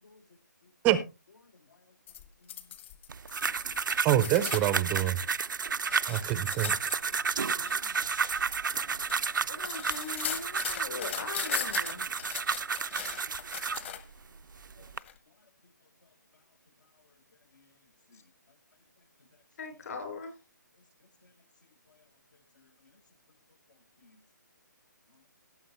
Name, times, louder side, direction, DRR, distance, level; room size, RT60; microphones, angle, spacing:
voice 1, 1.4-1.9 2.4-2.8 3.8-3.9 5.6-5.9 7.1-7.3 7.6-8.1 8.7-9.5 12.6-13.0 13.9-14.0 14.8-14.9 15.3-15.4 16.0-16.4 17.0-17.1 17.5-17.7 18.1-18.2 21.2-21.3 21.9-22.0 22.5-22.9 24.0-24.2 25.1-25.3, left 3 dB, 70° left, 8 dB, 1.3 m, -62 dB
sound 1, 2.1-5.1 5.5-14.2 15.0-15.1, left 10 dB, 40° left, 1.2 m, -40 dB
sound 2, 3.1-13.9 14.5-15.0, right 5 dB, 85° right, 0.5 m, -32 dB
voice 2, 4.0-5.2 6.1-6.9, right 13 dB, 15° right, 14 dB, 0.5 m, -26 dB
voice 3, 9.5-12.0 19.6-20.3, left 4 dB, 55° left, 6 dB, 4.1 m, -40 dB
17.5 x 7.2 x 3.0 m, 0.27 s
hypercardioid pair, 155°, 10 cm